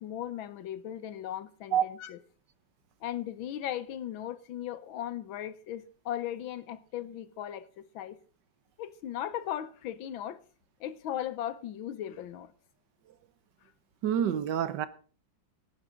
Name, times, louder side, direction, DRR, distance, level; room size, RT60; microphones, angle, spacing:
voice 1, 0.0-2.2 3.0-8.2 8.8-10.4 10.8-12.5, left 11 dB, 85° left, 1.7 m, -37 dB
voice 2, 14.0-14.9, right 9 dB, 65° right, 1.4 m, -27 dB
17.0 x 9.7 x 3.8 m
omnidirectional pair, 2.1 m